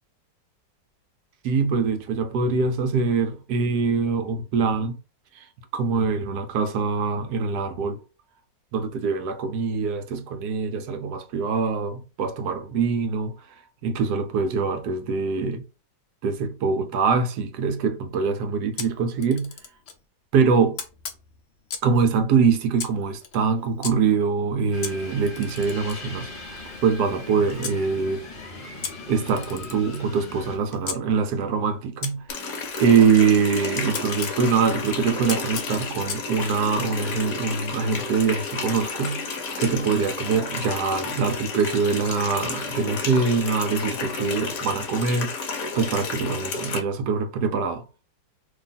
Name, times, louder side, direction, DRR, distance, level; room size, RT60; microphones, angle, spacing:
voice 1, 1.4-5.0 5.7-8.0 8.7-13.4 13.8-15.6 16.2-19.5 20.3-20.8 21.8-28.2 29.1-32.2 32.8-47.8, right 5 dB, 70° right, 1.1 m, -24 dB
Camera, 18.8-20.0 20.8-22.0 22.8-23.9 24.8-27.8 28.8-31.0 32.0-34.4 35.3-36.3, left 6 dB, 85° left, 0.5 m, -37 dB
sound 1, 24.7-30.6, left 2 dB, 35° left, 1.0 m, -39 dB
Water tap faucet, 32.3-46.8, left 4 dB, 60° left, 1.0 m, -31 dB
2.9 x 2.4 x 3.9 m
omnidirectional pair, 1.9 m